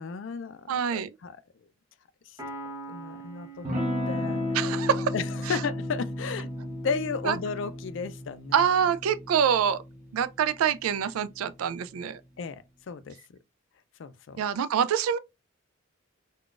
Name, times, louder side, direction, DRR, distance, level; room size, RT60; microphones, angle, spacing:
voice 1, 0.0-1.4 2.9-4.4 5.1-6.5 6.8-8.6 12.4-13.2 14.0-14.4, left 5 dB, 60° left, 0.3 m, -34 dB
voice 2, 0.7-1.1 4.5-5.1 5.5-5.6 7.2-7.4 8.5-9.8 10.1-12.2 14.4-15.2, right 8 dB, 85° right, 0.3 m, -25 dB
Piano, 2.4-6.0, right 2 dB, 15° right, 1.1 m, -44 dB
Electric guitar / Strum, 3.6-11.9, left 1 dB, 35° right, 0.9 m, -34 dB
3.7 x 2.3 x 2.4 m
head